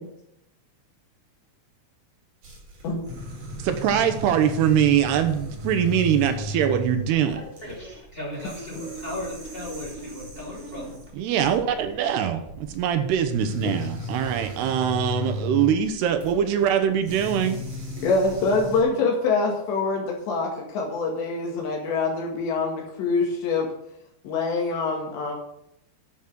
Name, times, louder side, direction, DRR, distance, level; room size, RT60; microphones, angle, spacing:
sound 1, 2.4-18.8, left 1 dB, 50° right, 5.0 m, -36 dB
voice 1, 3.6-7.4 11.1-17.6, right 9 dB, 80° right, 8 dB, 2.9 m, -23 dB
voice 2, 7.3-11.0, left 1 dB, 15° left, -4 dB, 2.1 m, -37 dB
voice 3, 18.0-23.7 24.2-25.3, left 4 dB, 80° left, -1 dB, 4.2 m, -25 dB
11.0 x 7.3 x 6.1 m, 0.77 s
omnidirectional pair, 4.9 m